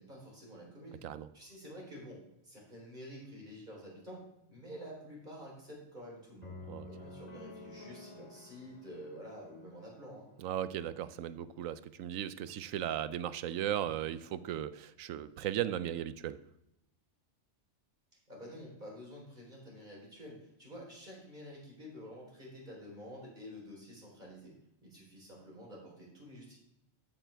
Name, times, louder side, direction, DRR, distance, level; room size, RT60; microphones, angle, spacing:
voice 1, 0.0-1.0 1.3-6.6 6.9-10.3 18.3-24.5 24.8-26.6, equal, 35° right, -3 dB, 4.1 m, -49 dB
sound 1, 6.4-10.5, left 2 dB, 30° left, 2.1 m, -51 dB
voice 2, 10.4-16.4, right 11 dB, 85° right, 14 dB, 1.0 m, -36 dB
12.0 x 8.9 x 3.4 m, 0.82 s
omnidirectional pair, 1.3 m